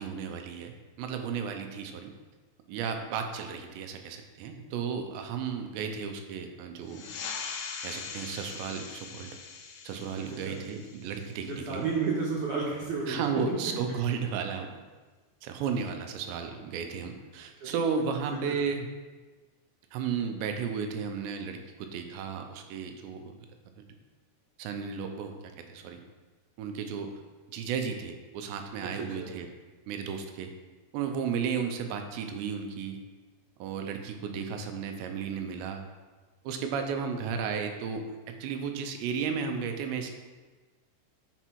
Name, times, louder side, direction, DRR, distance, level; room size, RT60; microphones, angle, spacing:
voice 1, 0.0-2.1 2.7-7.1 7.8-9.4 9.8-11.9 13.1-14.8 15.4-18.9 19.9-21.6 21.9-23.3 23.8-23.9 24.6-25.4 25.7-26.0 26.6-27.2 27.5-29.5 29.9-30.5 30.9-33.0 33.6-35.8 36.4-40.1, right 6 dB, 85° right, 5 dB, 2.9 m, -34 dB
sound 1, 6.8-12.0, left 6 dB, 80° left, 2.1 m, -42 dB
voice 2, 11.4-13.3 17.6-17.7 18.3-18.6 28.8-29.3, right 4 dB, 65° right, -5 dB, 2.1 m, -32 dB
10.0 x 4.6 x 4.6 m, 1.3 s
omnidirectional pair, 5.0 m